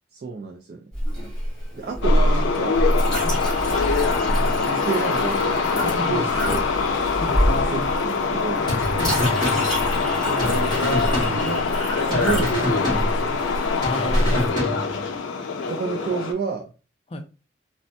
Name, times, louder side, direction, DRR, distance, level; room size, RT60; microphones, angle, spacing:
voice 1, 0.1-0.8 1.7-2.8 4.2-5.5 5.8-6.6 7.5-8.6 10.2-11.6 12.0-13.4 15.7-16.7, right 4 dB, 55° right, 2 dB, 0.3 m, -30 dB
Chink clink, 0.9-14.5, equal, 5° left, 1.1 m, -26 dB
sound 1, 2.0-16.3, left 4 dB, 90° left, 0.5 m, -24 dB
sound 2, 8.7-10.1 10.4-11.8 12.1-13.5 13.8-15.1, equal, 25° right, 1.5 m, -29 dB
voice 2, 9.0-9.3 13.8-14.6 17.1-17.2, left 2 dB, 30° left, 5 dB, 0.4 m, -31 dB
3.2 x 2.1 x 2.6 m, 0.33 s
head